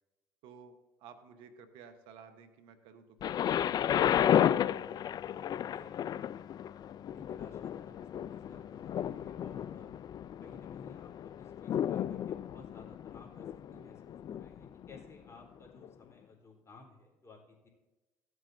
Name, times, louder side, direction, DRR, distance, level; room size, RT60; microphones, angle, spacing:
voice 1, 0.4-4.3, right 6 dB, 80° right, 8 dB, 1.1 m, -54 dB
Thunder, 3.2-15.1 15.8-15.9, left 10 dB, 50° left, 0.4 m, -33 dB
voice 2, 5.1-6.3 7.0-7.9 8.3-10.0 10.4-17.7, left 3 dB, 35° left, 0 dB, 3.6 m, -56 dB
16.0 x 8.2 x 2.6 m, 1.1 s
supercardioid pair, 65°, 9 cm